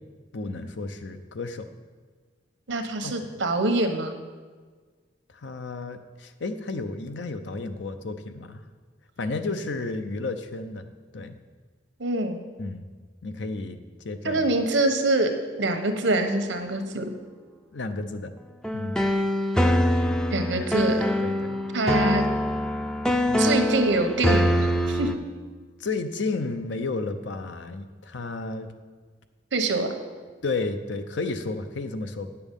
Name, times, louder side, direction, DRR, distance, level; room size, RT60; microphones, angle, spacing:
voice 1, 0.3-1.7 3.0-3.5 5.3-8.6 9.2-10.9 11.1-11.4 12.6-12.8 13.2-13.8 14.0-14.5 17.7-18.3 18.7-19.0 21.0-21.6 23.3-23.6 25.8-28.7 30.4-32.3, left 3 dB, 70° left, 8 dB, 0.7 m, -32 dB
voice 2, 2.7-4.2 12.0-12.4 14.2-15.3 15.6-17.1 20.3-21.0 21.7-22.2 23.4-25.1 29.5-29.9, right 2 dB, 85° right, 6 dB, 1.1 m, -25 dB
sound 1, 18.6-25.1, equal, 5° left, 0.4 m, -24 dB
9.7 x 6.9 x 5.3 m, 1.5 s
head